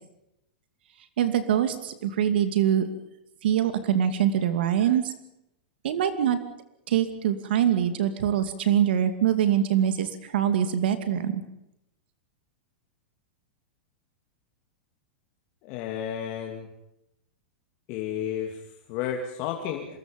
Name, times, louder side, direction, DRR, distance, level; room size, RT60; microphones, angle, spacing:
voice 1, 1.2-2.9 3.4-5.1 5.8-6.4 6.9-11.4, right 10 dB, 65° right, 10 dB, 2.5 m, -24 dB
voice 2, 15.6-16.7 17.9-20.0, left 9 dB, 35° left, 2 dB, 2.8 m, -32 dB
27.0 x 21.5 x 5.4 m, 0.84 s
supercardioid pair, 160°, 6 cm